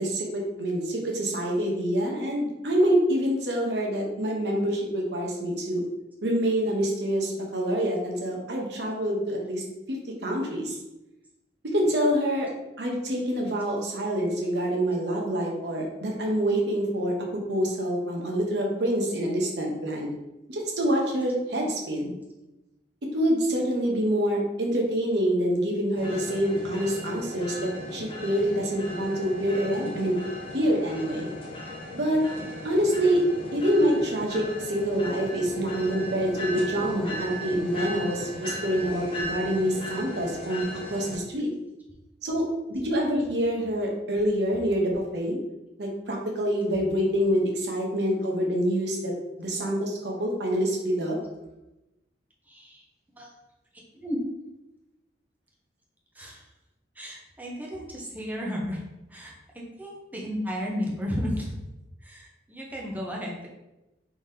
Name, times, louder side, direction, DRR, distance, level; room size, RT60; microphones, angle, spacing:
voice 1, 0.0-5.8 6.2-10.8 11.7-12.5 12.8-17.1 17.5-20.1 20.5-22.1 23.1-30.2 30.5-31.3 31.9-32.2 32.6-33.2 33.5-40.6 40.9-41.5 42.2-45.4 45.8-49.1 49.4-51.2, equal, 70° right, 0 dB, 0.9 m, -26 dB
sound 1, 26.0-41.2, left 1 dB, 30° left, 0.6 m, -37 dB
voice 2, 52.5-52.8 53.2-53.3 54.0-54.2 56.1-56.4 57.0-58.8 59.1-61.5 62.0-63.5, equal, 10° right, -2 dB, 0.7 m, -33 dB
3.7 x 3.4 x 2.7 m, 0.97 s
head